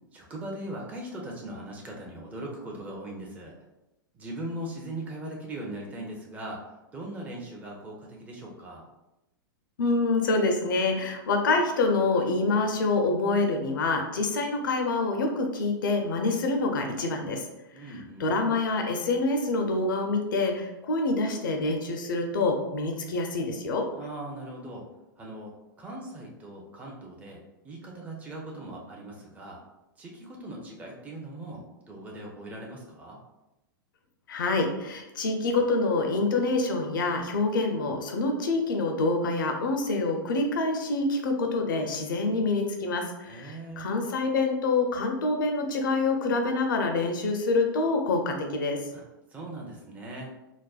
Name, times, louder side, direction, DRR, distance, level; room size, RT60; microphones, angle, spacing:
voice 1, 0.1-3.5 4.1-6.6 6.9-8.9 17.7-18.3 24.0-24.8 25.2-25.5 25.8-29.6 30.0-33.2 43.2-43.9 48.9-49.0 49.3-50.4, right 1 dB, 15° right, -2 dB, 0.6 m, -40 dB
voice 2, 9.8-17.4 18.2-23.9 34.3-48.8, left 3 dB, 65° left, 3 dB, 0.6 m, -26 dB
4.0 x 2.1 x 2.3 m, 0.96 s
figure-of-eight pair, 100°, 12 cm